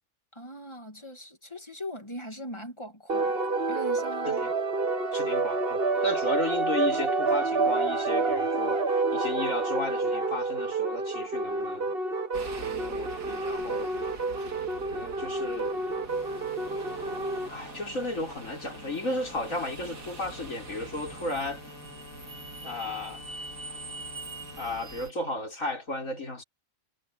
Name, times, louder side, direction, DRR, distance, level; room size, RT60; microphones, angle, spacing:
voice 1, 0.3-3.4 3.7-4.4, left 1 dB, 20° left, 2.5 m, -40 dB
sound 1, 3.1-17.5, right 3 dB, 45° right, 1.7 m, -28 dB
voice 2, 5.1-12.0 12.6-13.9 14.9-15.8 17.5-21.6 22.6-23.2 24.6-26.4, left 2 dB, 70° left, 5.6 m, -34 dB
sound 2, 12.3-25.1, right 3 dB, 75° right, 2.6 m, -44 dB
sound 3, 16.1-25.1, left 6 dB, 85° left, 2.9 m, -49 dB
omnidirectional pair, 1.4 m